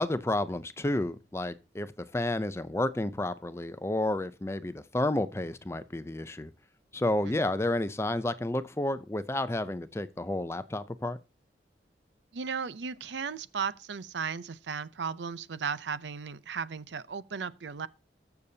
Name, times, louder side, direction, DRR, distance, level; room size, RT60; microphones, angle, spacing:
voice 1, 0.0-6.5 6.9-11.2, left 1 dB, 15° left, 0.5 m, -31 dB
voice 2, 12.3-17.9, right 6 dB, 90° right, 0.6 m, -35 dB
20.5 x 6.9 x 2.8 m
head